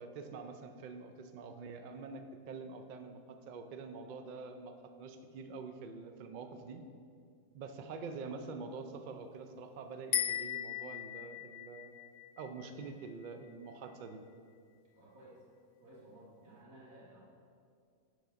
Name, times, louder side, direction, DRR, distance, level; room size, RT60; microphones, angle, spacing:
voice 1, 0.0-6.8 7.5-12.0 12.4-14.3, right 4 dB, 65° right, 7 dB, 0.4 m, -46 dB
sound 1, 10.1-13.5, left 10 dB, 75° left, 0.9 m, -38 dB
voice 2, 15.0-15.4 15.8-17.2, right 1 dB, 85° right, -6 dB, 2.3 m, -56 dB
7.0 x 4.6 x 5.1 m, 2.2 s
omnidirectional pair, 1.4 m